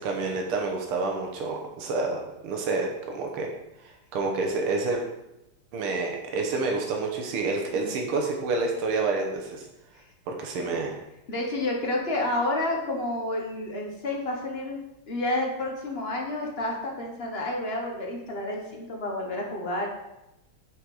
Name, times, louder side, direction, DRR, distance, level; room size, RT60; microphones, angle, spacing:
voice 1, 0.0-3.5 3.8-5.0 5.7-9.7 10.3-11.0, right 3 dB, 85° right, 1 dB, 1.8 m, -28 dB
voice 2, 11.3-14.8 15.1-19.9, left 1 dB, 40° left, 0 dB, 0.9 m, -30 dB
6.3 x 5.1 x 4.7 m, 0.91 s
omnidirectional pair, 2.3 m